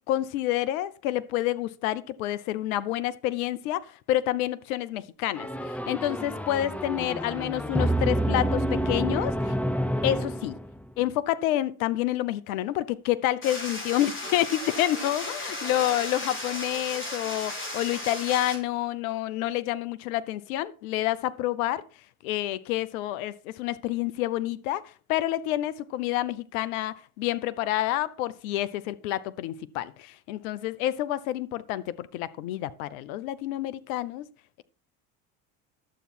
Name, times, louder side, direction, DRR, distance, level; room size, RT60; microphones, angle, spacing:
voice 1, 0.1-9.5 10.0-10.6 11.0-21.8 22.2-24.8 25.1-34.3, left 14 dB, 75° left, 1.0 m, -28 dB
sound 1, 5.3-10.9, right 1 dB, 5° left, 0.8 m, -28 dB
sound 2, 13.4-18.6, left 2 dB, 30° left, 5.3 m, -35 dB
11.5 x 8.3 x 4.4 m
hypercardioid pair, 75°, 43 cm